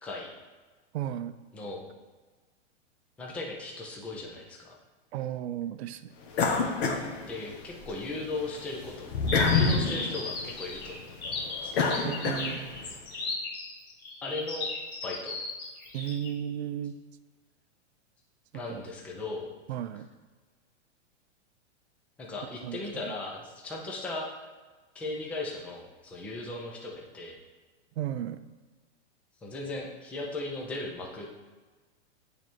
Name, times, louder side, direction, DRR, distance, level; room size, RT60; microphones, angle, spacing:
voice 1, 0.9-1.4 5.1-6.1 12.0-12.8 15.9-17.0 18.5-18.8 19.7-20.1 22.6-23.1 28.0-28.4, right 11 dB, 65° right, 11 dB, 0.6 m, -34 dB
voice 2, 1.5-1.9 3.2-4.8 7.3-9.1 9.5-11.2 11.6-12.1 14.2-14.7 15.0-15.4 18.5-19.5 22.2-24.3 24.9-27.4 29.4-31.4, left 2 dB, 5° left, -1 dB, 0.3 m, -37 dB
sound 1, 6.3-7.9 8.3-12.9, left 4 dB, 60° left, 1.2 m, -28 dB
sound 2, 9.3-16.3, left 3 dB, 30° left, 1.5 m, -36 dB
8.7 x 3.4 x 4.4 m, 1.3 s
hypercardioid pair, 145°, 35 cm